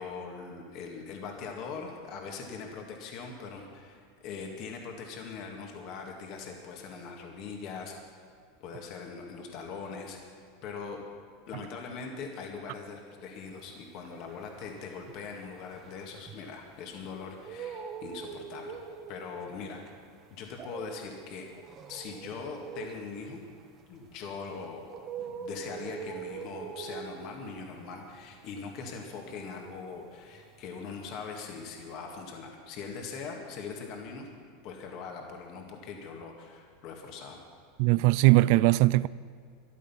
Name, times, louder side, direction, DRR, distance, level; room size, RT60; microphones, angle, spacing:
voice 1, 0.0-8.0 8.6-11.0 11.5-19.8 20.3-21.5 21.9-23.4 23.9-24.9 25.2-34.3 34.6-37.4, left 5 dB, 50° left, 2.1 m, -41 dB
sound 1, 13.6-16.8 17.2-30.6 30.9-31.9, right 6 dB, 35° right, 1.3 m, -44 dB
voice 2, 37.8-39.1, right 19 dB, 60° right, 0.3 m, -20 dB
14.0 x 11.5 x 5.7 m
supercardioid pair, 125°, 0 cm